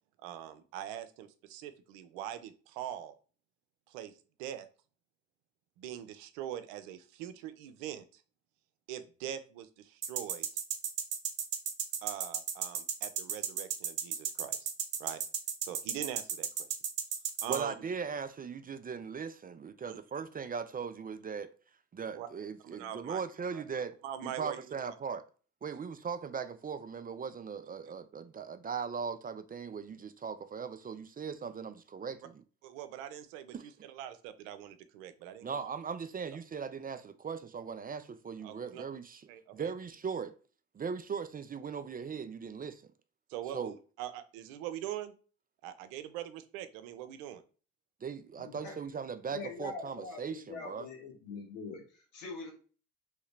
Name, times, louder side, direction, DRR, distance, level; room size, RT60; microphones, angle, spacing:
voice 1, 0.2-3.2 3.9-4.7 5.8-8.2 8.9-10.5 12.0-14.7 15.0-15.2 15.6-16.7 17.4-17.7 19.9-20.0 22.1-22.3 22.6-23.2 23.5-23.6 24.0-24.7 32.6-35.7 38.4-38.8 39.3-39.7 43.3-45.1 45.6-47.4, right 11 dB, 80° right, 0.5 m, -43 dB
sound 1, 10.0-17.6, right 8 dB, 55° right, 0.9 m, -33 dB
voice 2, 17.5-21.5 21.9-24.0 24.2-25.2 25.6-32.4 33.5-33.6 35.4-40.3 40.7-42.8 43.5-43.8 48.0-50.9, right 6 dB, 25° right, 0.4 m, -39 dB
voice 3, 48.4-48.8 49.3-52.5, left 4 dB, 85° left, 1.2 m, -43 dB
3.2 x 2.8 x 3.2 m
hypercardioid pair, 50°, 38 cm